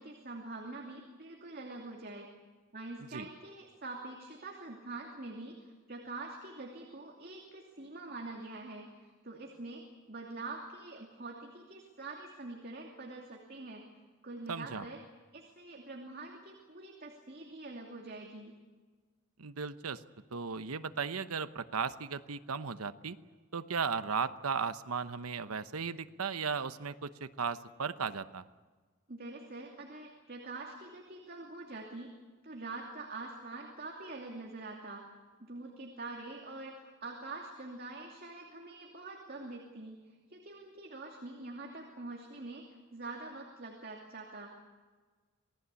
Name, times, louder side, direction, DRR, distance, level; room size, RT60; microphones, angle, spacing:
voice 1, 0.0-2.3 2.7-13.8 14.2-15.0 15.3-18.5 29.1-32.1 32.4-35.0 35.4-44.5, right 2 dB, 45° right, 0 dB, 2.7 m, -45 dB
voice 2, 14.5-14.8 19.4-20.0 20.3-23.2 23.5-28.4, right 5 dB, 85° right, 12 dB, 1.0 m, -36 dB
27.5 x 18.5 x 8.4 m, 1.4 s
head